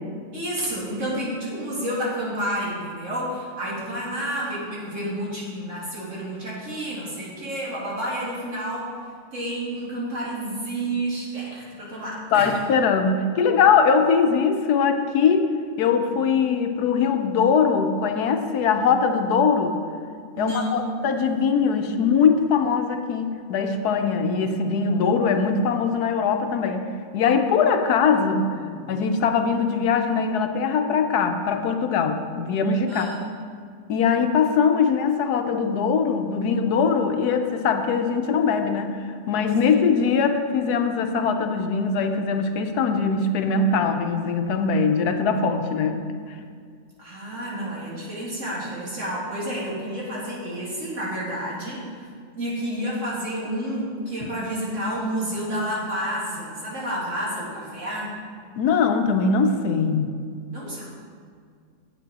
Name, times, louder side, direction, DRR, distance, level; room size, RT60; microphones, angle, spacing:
voice 1, 0.3-8.9 9.3-12.5 20.3-20.9 27.4-28.9 32.9-33.2 39.6-39.8 47.0-52.1 52.3-58.2 60.5-60.8, right 1 dB, 50° right, -6 dB, 2.5 m, -30 dB
voice 2, 12.3-15.5 15.8-19.8 20.4-26.9 27.1-28.4 28.9-33.1 33.9-39.0 39.3-46.0 54.2-54.3 58.6-60.1, left 5 dB, 80° left, 6 dB, 1.2 m, -21 dB
9.1 x 8.3 x 4.1 m, 2.1 s
omnidirectional pair, 1.7 m